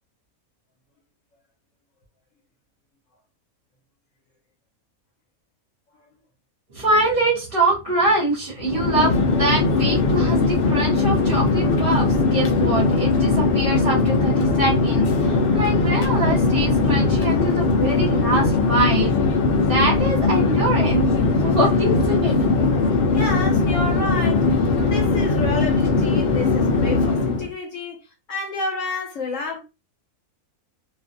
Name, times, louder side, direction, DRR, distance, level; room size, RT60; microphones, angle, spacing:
voice 1, 6.7-19.2 19.6-22.6, right 2 dB, 45° right, 0.9 m, -24 dB
Chatter / Fixed-wing aircraft airplane, 8.6-27.5, left 3 dB, 85° left, 0.5 m, -19 dB
voice 2, 23.1-28.0 28.3-29.6, left 3 dB, 65° left, 1.0 m, -30 dB
2.4 x 2.4 x 2.5 m
omnidirectional pair, 1.6 m